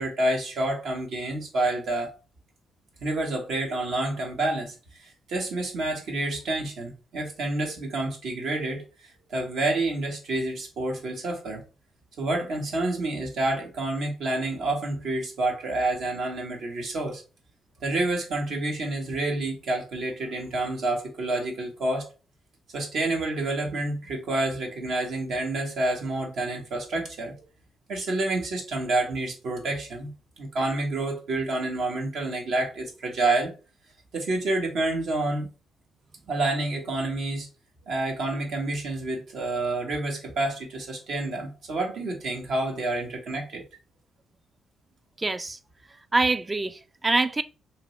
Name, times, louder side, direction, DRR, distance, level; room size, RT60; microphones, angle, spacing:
voice 1, 0.0-2.1 3.0-4.7 5.0-8.8 9.3-11.6 12.2-17.2 17.8-22.1 22.7-27.4 27.9-30.1 30.4-33.5 34.1-35.5 36.3-37.5 37.9-43.6, right 2 dB, 70° right, 1.1 m, -28 dB
voice 2, 45.2-45.6 46.1-47.4, right 3 dB, 25° right, 0.3 m, -25 dB
2.9 x 2.5 x 3.1 m
supercardioid pair, 60°, 0 cm